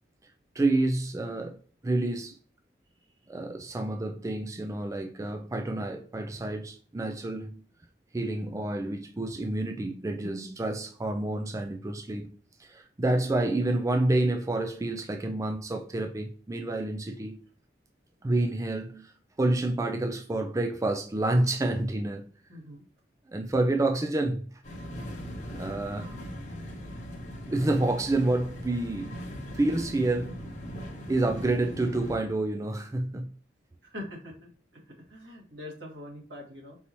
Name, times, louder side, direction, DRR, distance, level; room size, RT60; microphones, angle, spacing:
voice 1, 0.6-1.6 1.8-2.4 3.3-7.6 8.1-17.4 18.2-19.1 19.4-22.3 23.3-24.4 25.5-26.2 27.4-29.2 29.5-30.3 31.1-33.3, right 2 dB, 20° right, 0.4 m, -28 dB
voice 2, 22.5-22.8 33.8-36.8, left 1 dB, 80° right, 1.9 m, -43 dB
sound 1, 24.6-32.2, equal, 45° left, 1.0 m, -39 dB
5.4 x 2.8 x 3.0 m
head